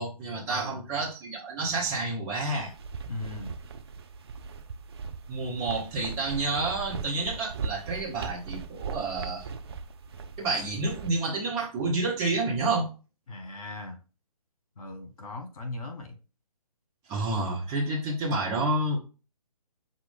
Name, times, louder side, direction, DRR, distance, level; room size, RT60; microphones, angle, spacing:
voice 1, 0.0-2.7 5.3-9.5 10.4-12.9 17.1-19.0, right 2 dB, 15° right, -3 dB, 0.8 m, -29 dB
sound 1, 2.6-11.1, right 5 dB, 40° right, 0.5 m, -39 dB
voice 2, 3.1-3.5 13.3-14.0 14.8-16.1, left 2 dB, 60° left, 5 dB, 1.5 m, -38 dB
5.9 x 2.5 x 3.5 m, 0.33 s
figure-of-eight pair, 145°, 20 cm